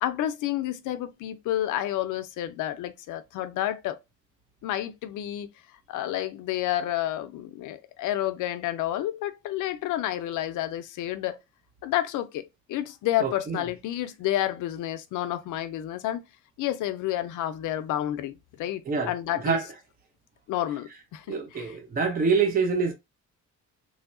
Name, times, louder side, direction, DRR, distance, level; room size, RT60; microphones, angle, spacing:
voice 1, 0.0-4.0 4.6-5.5 5.9-11.4 11.8-16.2 16.6-19.6 20.5-21.8, left 13 dB, 85° left, 0.5 m, -30 dB
voice 2, 13.2-13.6 18.9-19.1 19.4-19.6 21.3-22.9, right 5 dB, 30° right, 0.7 m, -25 dB
3.1 x 2.7 x 2.5 m
cardioid pair, 90°, 30 cm